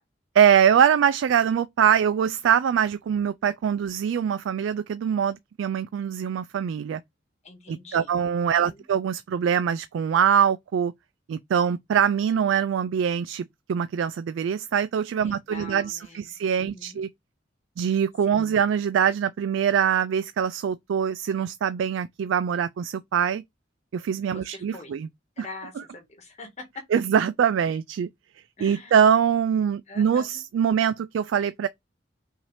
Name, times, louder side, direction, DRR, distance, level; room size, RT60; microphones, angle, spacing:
voice 1, 0.3-7.0 7.7-10.9 11.3-17.1 17.8-23.4 23.9-25.1 25.4-25.5 26.9-28.1 28.6-31.7, right 8 dB, 80° right, 0.3 m, -23 dB
voice 2, 7.4-8.1 8.5-8.8 15.2-17.0 18.2-18.5 24.3-24.9 25.4-26.8 28.6-29.0 29.9-30.4, left 3 dB, 35° left, 1.4 m, -44 dB
5.6 x 2.7 x 3.3 m
head